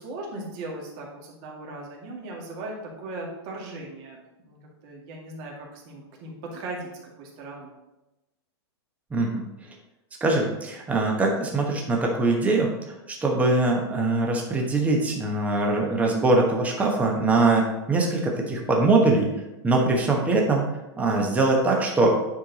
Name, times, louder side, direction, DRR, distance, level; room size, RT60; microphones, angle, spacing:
voice 1, 0.0-6.9 7.2-7.7, right 2 dB, 40° right, -2 dB, 2.2 m, -38 dB
voice 2, 10.2-12.7 13.2-19.3 19.6-20.6 21.0-22.1, right 2 dB, 10° right, 0 dB, 1.1 m, -22 dB
9.5 x 4.5 x 4.1 m, 0.97 s
hypercardioid pair, 150°, 15 cm